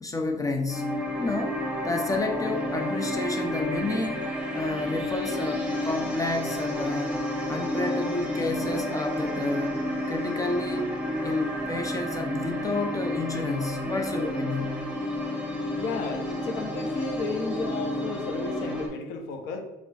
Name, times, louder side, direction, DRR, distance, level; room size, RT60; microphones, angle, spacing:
voice 1, 0.0-7.2 7.5-9.8 10.1-10.9 11.2-14.8, left 2 dB, 20° left, 4 dB, 0.4 m, -30 dB
sound 1, 0.7-18.9, left 1 dB, 5° right, 1.1 m, -31 dB
voice 2, 15.8-19.6, left 4 dB, 90° left, 3 dB, 0.8 m, -33 dB
5.5 x 3.0 x 2.3 m, 0.98 s
cardioid pair, 110°, 17 cm